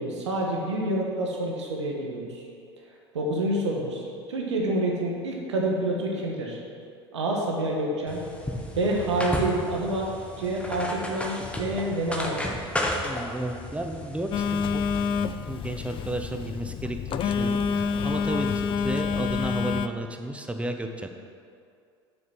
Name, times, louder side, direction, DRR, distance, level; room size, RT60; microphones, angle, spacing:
voice 1, 0.0-2.4 3.1-6.6 7.1-8.2 8.7-10.1 10.4-12.5, right 1 dB, 85° right, -1 dB, 1.6 m, -28 dB
sound 1, 8.1-15.2, left 1 dB, 10° left, 1.3 m, -34 dB
voice 2, 13.0-14.9 15.5-21.1, right 1 dB, 10° right, 5 dB, 0.8 m, -33 dB
Telephone, 14.3-19.9, left 6 dB, 35° left, 0.4 m, -27 dB
7.1 x 6.5 x 6.0 m, 2.3 s
hypercardioid pair, 80°, 14 cm